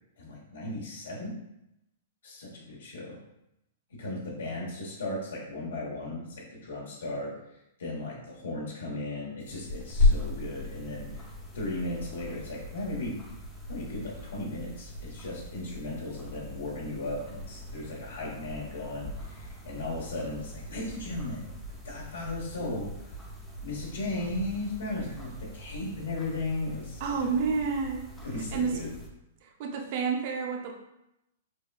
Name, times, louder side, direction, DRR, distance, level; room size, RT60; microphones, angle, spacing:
voice 1, 0.2-1.3 2.2-3.2 3.9-7.3 7.8-11.3 11.5-13.1 13.7-21.5 21.8-22.9 23.6-27.3 28.2-28.9, left 2 dB, 85° left, -4 dB, 1.3 m, -36 dB
sound 1, 9.4-29.1, left 2 dB, 5° left, 0.8 m, -36 dB
voice 2, 27.0-28.0 28.3-28.8 29.4-30.7, right 5 dB, 50° right, 1 dB, 0.8 m, -30 dB
6.1 x 2.2 x 2.4 m, 0.85 s
hypercardioid pair, 125°, 0 cm